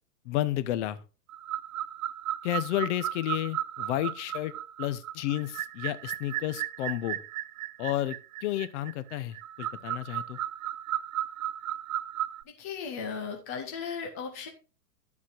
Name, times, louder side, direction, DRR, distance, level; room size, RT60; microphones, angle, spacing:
voice 1, 0.2-1.0 2.4-7.2 7.8-10.4, left 14 dB, 45° left, 0.8 m, -31 dB
sound 1, 1.3-12.4, right 13 dB, 60° right, 0.6 m, -35 dB
voice 2, 12.4-14.5, left 6 dB, 15° left, 0.3 m, -36 dB
11.5 x 7.2 x 2.5 m
hypercardioid pair, 120°, 49 cm